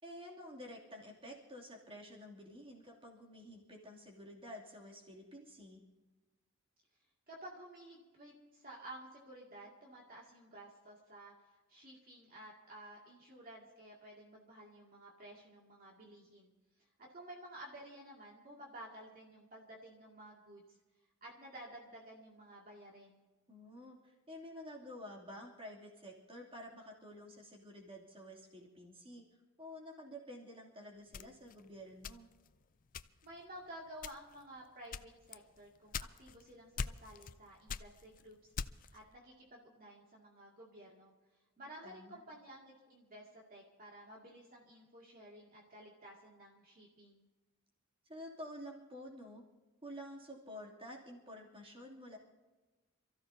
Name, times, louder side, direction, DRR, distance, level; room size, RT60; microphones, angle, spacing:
voice 1, 0.0-5.8 23.5-29.2 29.6-32.3 41.6-42.2 48.0-49.4 49.8-52.2, equal, 25° right, -3 dB, 2.8 m, -50 dB
voice 2, 7.3-11.3 11.7-16.5 17.1-20.8 21.2-23.3 33.2-38.5 38.9-41.1 41.6-47.3, right 1 dB, 40° right, -4 dB, 2.3 m, -53 dB
sound 1, 31.1-32.5 32.9-33.4 33.9-34.4 34.9-36.4 36.8-37.4 37.7-39.0, left 5 dB, 40° left, 0.4 m, -42 dB
28.0 x 14.5 x 2.8 m, 1.2 s
head